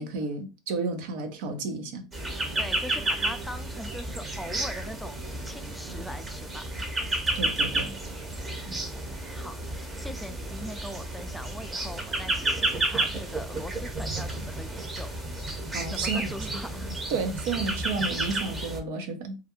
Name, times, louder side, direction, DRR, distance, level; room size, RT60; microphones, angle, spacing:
voice 1, 0.0-2.0 7.3-8.0 15.7-16.6 17.1-19.4, right 4 dB, 75° right, 0.6 m, -32 dB
sound 1, 2.1-18.8, right 2 dB, 20° right, 0.8 m, -31 dB
voice 2, 2.6-6.6 8.6-15.1 15.9-16.9, left 1 dB, 5° left, 0.3 m, -41 dB
2.4 x 2.2 x 2.9 m
hypercardioid pair, 95°, 0 cm